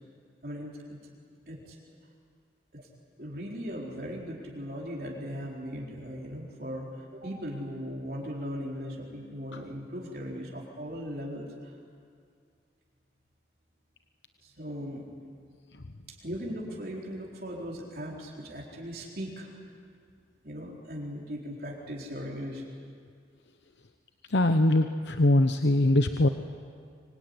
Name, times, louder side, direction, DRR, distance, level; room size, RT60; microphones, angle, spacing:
voice 1, 0.4-1.0 1.5-1.8 2.7-2.9 3.2-11.7 14.4-15.1 16.1-19.5 20.4-22.7, equal, 55° right, -3 dB, 4.3 m, -38 dB
voice 2, 24.3-26.3, left 1 dB, 80° left, 7 dB, 0.9 m, -22 dB
25.0 x 23.5 x 9.8 m, 2.2 s
head